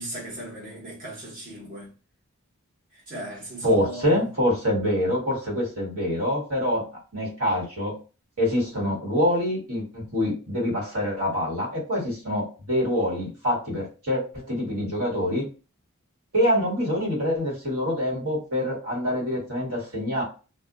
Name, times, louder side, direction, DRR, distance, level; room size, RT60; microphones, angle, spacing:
voice 1, 0.0-1.9 3.1-4.2, right 2 dB, 40° right, 1.1 m, -37 dB
voice 2, 3.6-8.0 8.4-15.4 16.3-20.2, equal, 70° right, 1.4 m, -25 dB
2.5 x 2.3 x 2.4 m
head